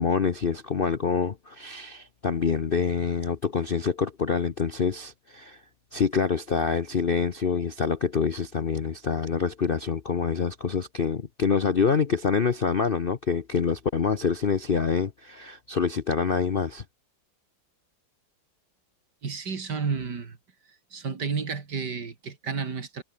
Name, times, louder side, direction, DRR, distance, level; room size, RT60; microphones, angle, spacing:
voice 1, 0.0-5.6 5.9-16.8, left 5 dB, 45° left, 0.8 m, -26 dB
voice 2, 19.2-20.4 20.9-23.0, right 5 dB, 60° right, 3.0 m, -31 dB
omnidirectional pair, 2.1 m